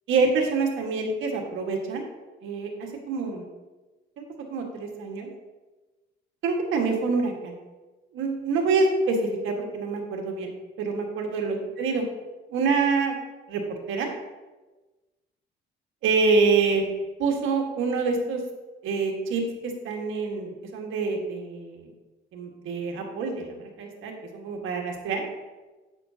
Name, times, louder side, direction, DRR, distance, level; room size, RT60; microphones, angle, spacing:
voice 1, 0.1-2.0 2.4-3.4 4.2-4.3 4.5-5.3 6.4-7.5 8.1-10.5 10.8-12.0 12.5-13.2 13.5-14.1 16.0-16.9 17.2-18.4 18.8-21.9 22.3-25.2, right 4 dB, 85° right, 2 dB, 1.6 m, -26 dB
9.8 x 7.8 x 2.8 m, 1.2 s
cardioid pair, 90°, 20 cm